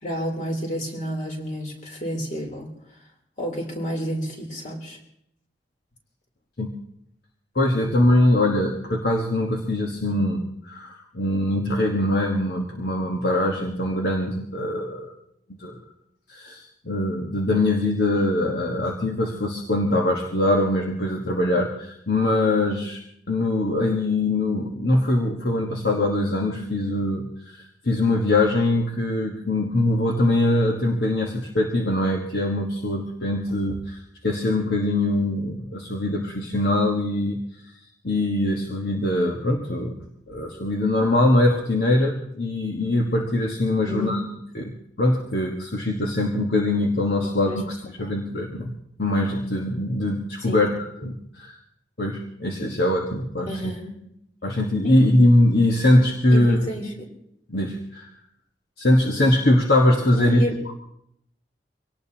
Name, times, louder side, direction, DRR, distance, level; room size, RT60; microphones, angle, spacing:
voice 1, 0.0-3.0 3.4-5.0 10.1-10.2 43.8-44.3 47.2-47.6 48.0-48.1 50.4-50.6 53.5-54.0 54.8-55.0 56.3-57.1 60.1-60.6, equal, 45° left, 0 dB, 3.6 m, -31 dB
voice 2, 7.5-15.1 15.6-15.8 16.3-23.0 23.3-37.4 38.0-40.0 40.3-44.2 44.5-48.7 49.0-51.6 52.0-53.5 54.4-56.6 57.5-58.1 58.8-60.7, left 1 dB, 60° left, 0 dB, 1.5 m, -22 dB
25.0 x 18.0 x 2.9 m, 0.74 s
head